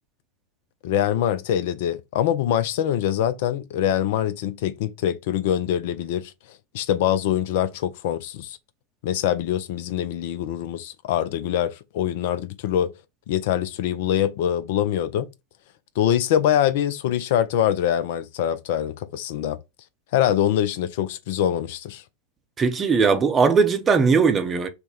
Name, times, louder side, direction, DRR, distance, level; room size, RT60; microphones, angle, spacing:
voice 1, 0.8-8.6 9.0-12.9 13.3-15.3 16.0-19.6 20.1-22.0, left 10 dB, 50° left, 0.3 m, -24 dB
voice 2, 22.6-24.7, right 5 dB, 20° right, 0.6 m, -19 dB
3.3 x 2.1 x 4.0 m
figure-of-eight pair, 90°, 0 cm